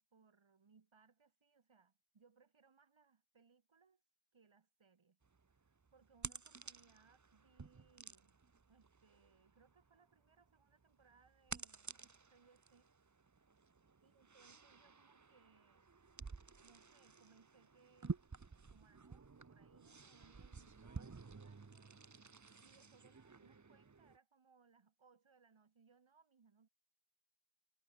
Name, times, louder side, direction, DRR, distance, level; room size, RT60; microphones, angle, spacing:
voice 1, 0.0-4.0 4.3-5.2 5.5-8.4 8.7-12.9 14.0-15.9 16.6-18.2 18.7-22.0 22.6-26.7, right 5 dB, 90° right, 2.3 m, -70 dB
sound 1, 5.2-24.2, right 4 dB, 40° right, 1.1 m, -52 dB
wide cardioid pair, 45°, 47 cm